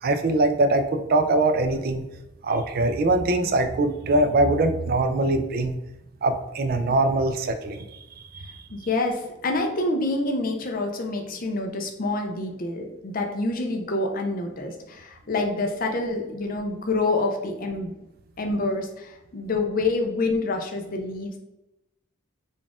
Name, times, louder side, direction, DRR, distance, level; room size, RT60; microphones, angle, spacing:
voice 1, 0.0-2.0 2.4-5.8 6.2-8.6, right 2 dB, 45° right, 8 dB, 0.3 m, -23 dB
voice 2, 8.7-17.9 18.4-21.4, left 2 dB, 40° left, 3 dB, 0.5 m, -27 dB
3.9 x 2.4 x 3.5 m, 0.94 s
head